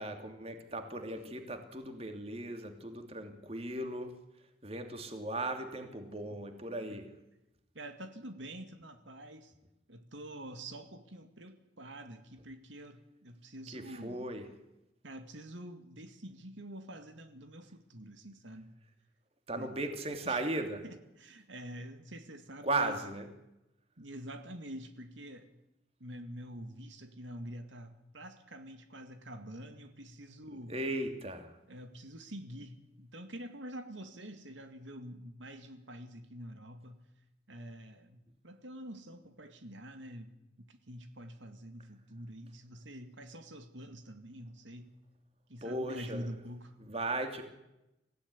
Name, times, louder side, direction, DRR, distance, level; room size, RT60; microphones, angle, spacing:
voice 1, 0.0-4.2 4.6-7.1 13.7-14.5 19.5-20.8 22.6-23.3 30.7-31.6 45.6-46.3 46.8-47.4, right 2 dB, 30° right, 6 dB, 2.8 m, -37 dB
voice 2, 7.7-9.5 9.9-14.3 15.0-18.7 19.6-19.7 20.2-20.4 20.8-23.0 24.0-25.5 26.0-30.8 31.7-37.1 37.5-45.0 45.5-46.8, right 1 dB, 85° right, 8 dB, 2.3 m, -47 dB
26.0 x 16.5 x 9.9 m, 0.92 s
head